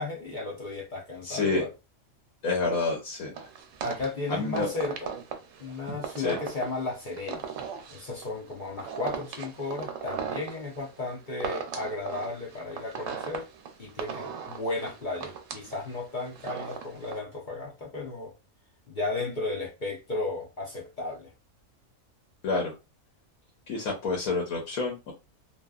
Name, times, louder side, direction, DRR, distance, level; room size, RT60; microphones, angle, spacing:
voice 1, 0.0-1.7 3.8-5.1 5.6-7.5 7.9-13.5 13.8-18.3 18.9-21.3, left 3 dB, 50° left, 0.6 m, -34 dB
voice 2, 1.2-1.6 2.4-3.3 4.3-4.7 6.2-6.4 22.4-22.7 23.7-25.1, left 3 dB, 85° left, 1.2 m, -28 dB
sound 1, 3.3-17.2, right 7 dB, 70° right, 0.9 m, -38 dB
2.8 x 2.3 x 2.3 m
omnidirectional pair, 1.4 m